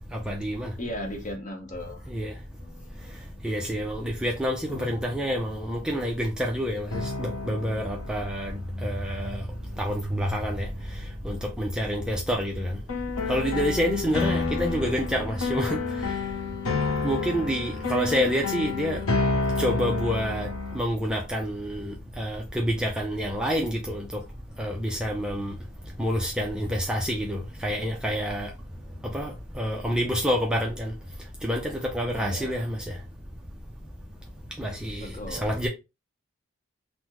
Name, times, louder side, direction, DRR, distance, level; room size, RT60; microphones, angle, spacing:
voice 1, 0.3-0.7 2.1-2.3 3.4-8.5 8.8-9.4 9.8-10.7 11.2-12.7 13.3-15.8 17.0-19.0 19.6-20.5 20.7-24.0 24.6-25.5 26.0-28.5 29.1-30.9 31.4-32.8 34.6-35.7, equal, 5° right, 0.4 m, -28 dB
voice 2, 0.8-2.1 32.2-32.7 35.0-35.6, left 1 dB, 35° left, 0.7 m, -37 dB
sound 1, 2.6-2.7 4.7-5.7 6.9-10.2 12.9-20.8, left 3 dB, 90° left, 0.8 m, -30 dB
3.5 x 2.0 x 2.9 m
head